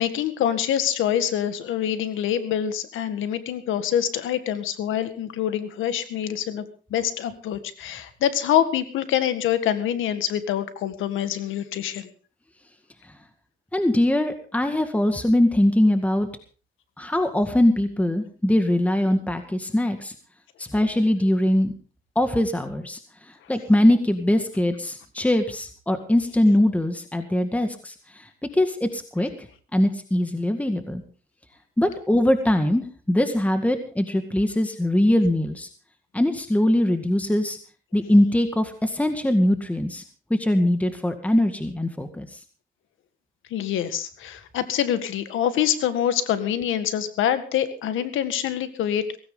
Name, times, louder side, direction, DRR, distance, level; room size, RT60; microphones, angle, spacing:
voice 1, 0.0-6.7 6.9-12.1 43.5-49.2, left 10 dB, 85° left, 11 dB, 1.8 m, -25 dB
voice 2, 13.7-16.3 17.0-20.1 20.6-21.7 22.2-23.0 23.3-31.0 31.8-35.7 36.1-37.6 37.9-40.0 40.3-42.4, left 1 dB, 5° left, 7 dB, 2.0 m, -22 dB
17.5 x 16.0 x 3.9 m, 0.39 s
cardioid pair, 90°, 20 cm